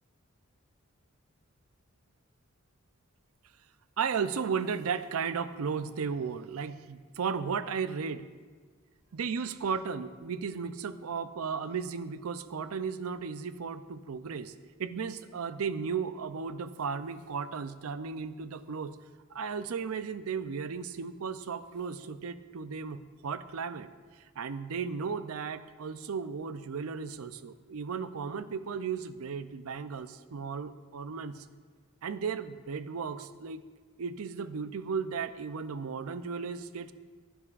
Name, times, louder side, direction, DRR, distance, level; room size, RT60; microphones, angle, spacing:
voice 1, 4.0-8.3 9.1-14.5 14.8-19.0 19.3-23.9 24.4-31.4 32.0-33.6 34.0-36.9, right 6 dB, 75° right, 12 dB, 0.5 m, -35 dB
15.0 x 11.5 x 2.5 m, 1.5 s
head